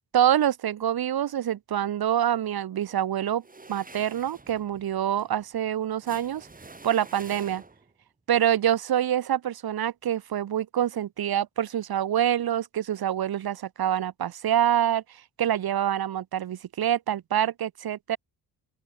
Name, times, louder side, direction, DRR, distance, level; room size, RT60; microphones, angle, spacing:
voice 1, 0.1-3.4 3.7-6.5 6.8-7.6 8.3-15.0 15.4-18.2, right 10 dB, 65° right, 1.7 m, -26 dB
sound 1, 3.4-8.0, right 3 dB, 20° right, 7.1 m, -48 dB
open air
cardioid pair, 110°, 39 cm